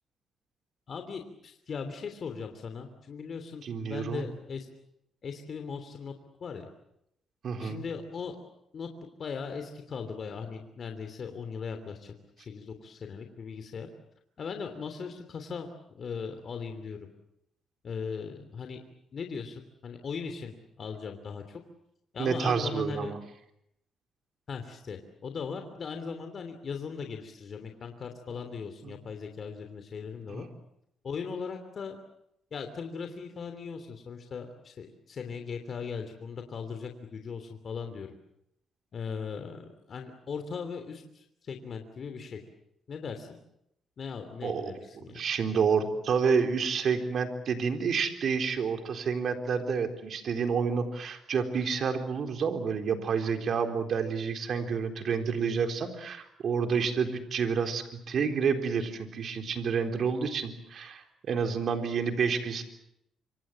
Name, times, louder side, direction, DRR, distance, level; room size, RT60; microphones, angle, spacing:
voice 1, 0.9-4.7 5.2-6.1 6.4-6.7 7.6-8.4 8.7-8.9 9.2-13.9 14.4-15.7 15.9-17.1 17.8-18.8 19.1-21.6 22.1-23.1 24.5-30.5 31.0-32.0 32.5-38.1 38.9-42.4 42.9-43.3 44.0-45.2, left 5 dB, 50° left, 6 dB, 3.1 m, -38 dB
voice 2, 3.6-4.2 7.4-7.8 22.2-23.2 28.8-29.0 30.3-30.5 44.4-62.6, right 6 dB, 60° right, 6 dB, 3.9 m, -29 dB
26.0 x 26.0 x 7.6 m, 0.79 s
cardioid pair, 90°, 0 cm